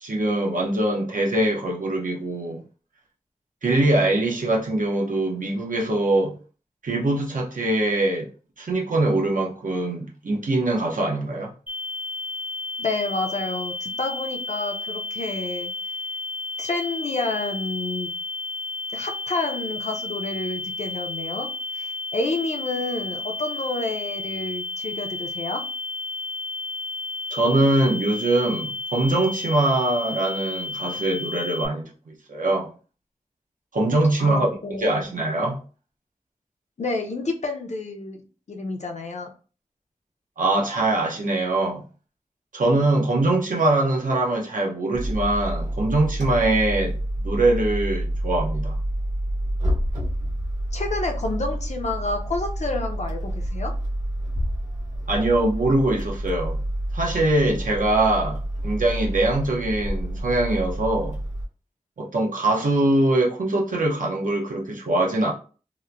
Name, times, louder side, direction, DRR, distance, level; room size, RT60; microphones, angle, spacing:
voice 1, 0.0-2.6 3.6-6.3 6.8-8.3 8.6-11.5 27.3-32.7 33.7-34.5 34.8-35.6 40.4-41.8 42.5-46.9 47.2-48.8 55.1-56.6 56.9-61.2 62.0-65.3, right 2 dB, 85° right, 0.7 m, -23 dB
sound 1, 11.7-31.7, left 3 dB, 15° right, 0.6 m, -32 dB
voice 2, 12.8-15.7 16.6-18.1 18.9-21.5 21.8-25.6 34.2-35.0 36.8-38.2 38.5-39.3 50.7-53.7, left 2 dB, 60° left, 0.6 m, -29 dB
sound 2, 44.9-61.5, right 1 dB, 70° right, 1.1 m, -28 dB
2.9 x 2.1 x 2.4 m
wide cardioid pair, 75°, 13 cm